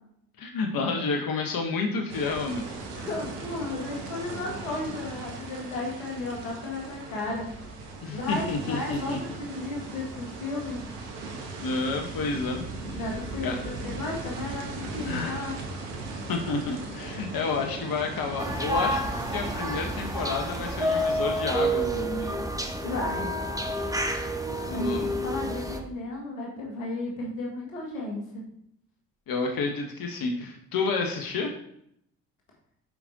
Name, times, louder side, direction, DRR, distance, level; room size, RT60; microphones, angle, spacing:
voice 1, 0.4-2.7 8.0-9.2 11.6-12.6 12.9-13.2 13.4-13.6 15.0-15.5 16.3-19.0 19.3-22.4 24.6-25.3 29.3-31.5, left 4 dB, 60° left, 3 dB, 1.3 m, -30 dB
sound 1, 2.1-21.4, right 3 dB, 80° right, 1.4 m, -38 dB
voice 2, 3.0-7.5 8.1-10.8 12.9-15.5 22.8-23.3 24.7-28.4, left 2 dB, 90° left, -1 dB, 1.6 m, -34 dB
sound 2, 18.4-25.8, equal, 10° right, 1.3 m, -29 dB
6.8 x 5.0 x 4.0 m, 0.73 s
hypercardioid pair, 40°, 39 cm